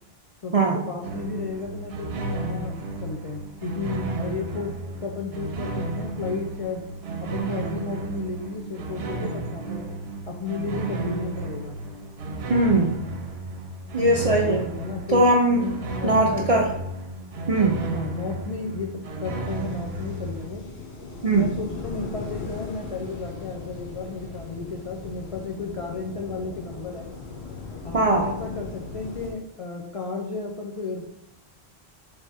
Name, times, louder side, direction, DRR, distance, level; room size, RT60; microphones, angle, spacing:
voice 1, 0.4-6.9 7.2-10.0 10.3-11.8 14.8-15.2 15.6-16.7 17.9-20.6 21.3-27.1 27.8-31.1, left 4 dB, 50° left, 0 dB, 0.4 m, -33 dB
sound 1, 1.0-20.5, right 2 dB, 75° right, 0.8 m, -33 dB
voice 2, 12.5-12.9 13.9-14.6 15.1-15.7 16.0-16.7 17.5-17.8 21.2-21.5 27.9-28.2, right 2 dB, 55° right, 1 dB, 0.4 m, -20 dB
sound 2, 19.5-29.3, left 4 dB, 90° left, 1.1 m, -38 dB
3.4 x 3.4 x 4.0 m, 0.84 s
omnidirectional pair, 1.1 m